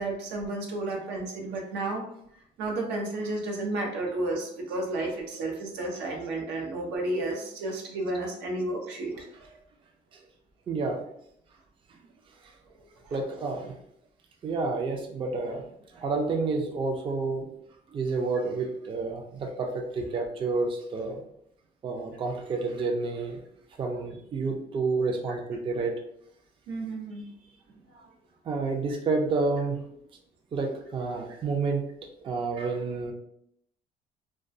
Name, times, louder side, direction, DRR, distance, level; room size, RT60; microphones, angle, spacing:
voice 1, 0.0-2.0 2.6-9.1 13.1-13.2 26.7-27.3, right 2 dB, 90° right, 0 dB, 0.6 m, -32 dB
voice 2, 9.1-9.5 10.7-11.0 13.1-13.7 14.4-15.6 15.9-17.5 17.9-21.2 21.8-23.4 23.8-26.0 28.4-29.8 30.5-31.8 32.2-33.1, right 3 dB, 30° right, 3 dB, 0.4 m, -29 dB
2.2 x 2.2 x 2.5 m, 0.74 s
cardioid pair, 110°, 17 cm